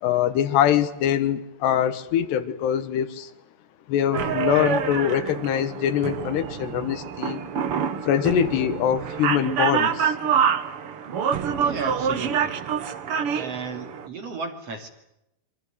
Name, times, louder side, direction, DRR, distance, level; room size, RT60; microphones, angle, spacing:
voice 1, 0.0-3.3 3.9-7.4 8.0-10.2, left 10 dB, 80° left, 12 dB, 3.5 m, -23 dB
sound 1, 4.1-14.1, right 7 dB, 85° right, 1.2 m, -26 dB
voice 2, 11.6-12.6 13.3-14.9, right 4 dB, 40° right, 6 dB, 3.2 m, -34 dB
26.5 x 24.5 x 8.1 m, 0.84 s
omnidirectional pair, 4.8 m